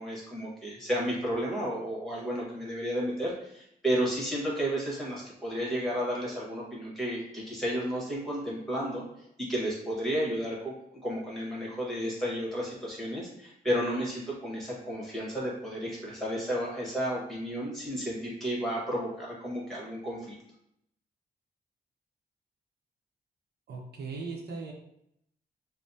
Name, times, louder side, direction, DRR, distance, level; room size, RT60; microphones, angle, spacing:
voice 1, 0.0-9.0 9.4-20.3, equal, ahead, -5 dB, 1.3 m, -32 dB
voice 2, 23.7-24.7, right 4 dB, 85° right, 1 dB, 0.7 m, -38 dB
5.3 x 2.0 x 2.7 m, 0.77 s
wide cardioid pair, 145°, 16 cm